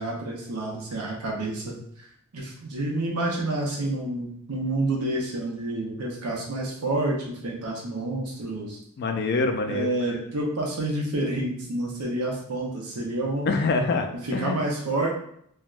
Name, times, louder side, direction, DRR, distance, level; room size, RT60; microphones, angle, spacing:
voice 1, 0.0-2.1 2.3-8.8 9.7-13.5 14.2-15.1, right 2 dB, 85° right, -1 dB, 0.7 m, -29 dB
voice 2, 9.0-9.9 13.5-14.6, left 3 dB, 45° left, 5 dB, 0.3 m, -25 dB
3.3 x 2.2 x 2.4 m, 0.68 s
head